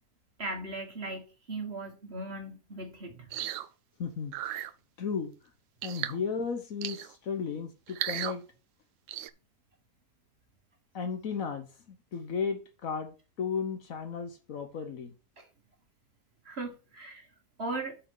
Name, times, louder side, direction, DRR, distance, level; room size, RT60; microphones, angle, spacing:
voice 1, 0.4-3.3 15.4-15.5 16.5-17.3 17.6-18.0, right 2 dB, 40° right, 1.7 m, -38 dB
sound 1, 3.3-3.7 4.3-4.7 5.8-6.2 6.8-7.1 7.9-8.4 9.1-9.3, right 12 dB, 70° right, 0.8 m, -35 dB
voice 2, 4.0-4.6 5.0-5.3 5.8-8.4 10.9-15.1, left 6 dB, 60° left, 1.3 m, -35 dB
8.5 x 4.3 x 5.4 m
omnidirectional pair, 1.7 m